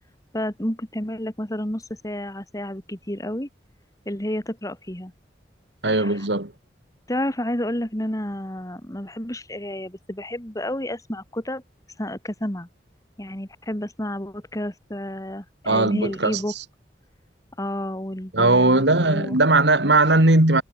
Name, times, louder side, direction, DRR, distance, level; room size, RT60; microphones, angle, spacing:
voice 1, 0.3-3.5 4.1-5.1 5.8-6.2 7.1-11.6 12.0-12.7 13.2-16.5 17.6-19.4, left 1 dB, 20° left, 2.9 m, -30 dB
voice 2, 5.8-6.5 15.6-16.4 18.3-20.6, right 2 dB, 75° right, 3.4 m, -18 dB
head